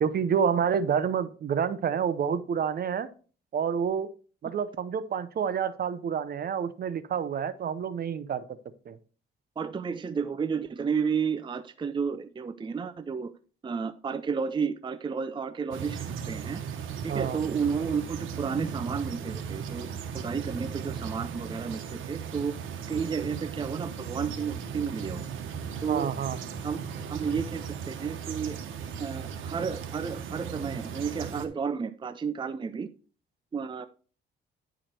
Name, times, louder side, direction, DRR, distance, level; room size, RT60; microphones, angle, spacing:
voice 1, 0.0-3.1 3.5-4.1 4.4-8.4 8.9-9.0 17.1-17.4 25.9-26.4, right 7 dB, 50° right, 14 dB, 0.8 m, -28 dB
voice 2, 9.6-13.3 13.6-16.6 17.0-22.6 22.9-25.3 25.8-26.1 26.6-26.8 27.1-28.6 29.0-32.9 33.5-33.9, right 6 dB, 25° right, 11 dB, 0.5 m, -32 dB
sound 1, 15.7-31.5, right 7 dB, 80° right, 1.2 m, -37 dB
10.0 x 4.9 x 4.4 m, 0.39 s
cardioid pair, 90°, 20 cm